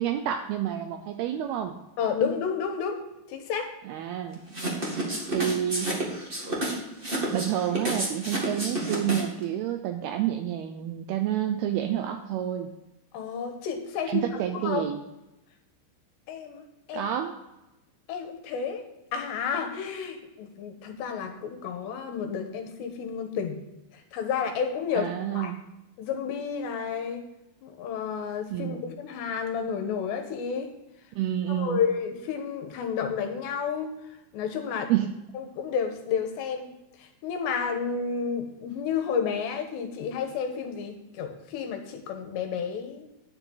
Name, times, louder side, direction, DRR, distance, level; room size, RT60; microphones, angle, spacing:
voice 1, 0.0-1.8 3.9-4.4 5.3-5.9 7.3-12.7 14.1-15.0 16.9-17.3 25.0-25.6 28.5-28.8 31.1-31.8 34.9-35.1, right 11 dB, 80° right, 7 dB, 2.3 m, -29 dB
voice 2, 2.0-3.0 3.3-3.7 13.1-14.9 16.3-16.6 16.9-17.1 18.1-18.9 19.1-23.6 23.9-25.5 26.0-27.2 27.6-30.7 31.5-33.9 34.3-34.9 35.3-36.7 37.0-43.1, left 6 dB, 80° left, 5 dB, 3.2 m, -31 dB
sound 1, 4.5-9.4, right 2 dB, 55° right, 0.6 m, -30 dB
10.0 x 9.8 x 3.9 m, 0.96 s
omnidirectional pair, 5.1 m